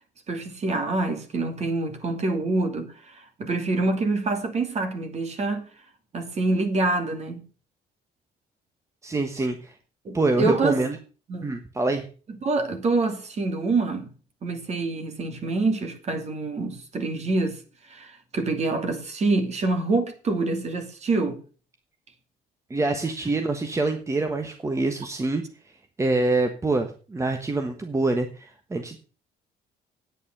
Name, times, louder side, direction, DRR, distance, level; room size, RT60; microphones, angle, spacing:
voice 1, 0.3-5.7 6.1-7.4 10.0-10.8 11.3-11.5 12.4-14.1 14.4-17.6 17.9-21.4, right 3 dB, 40° right, 2.7 m, -26 dB
voice 2, 9.0-9.7 10.1-11.0 11.4-12.1 22.7-25.4 26.0-29.0, right 2 dB, 15° right, 1.2 m, -25 dB
9.4 x 8.6 x 6.6 m
cardioid pair, 110°, 17 cm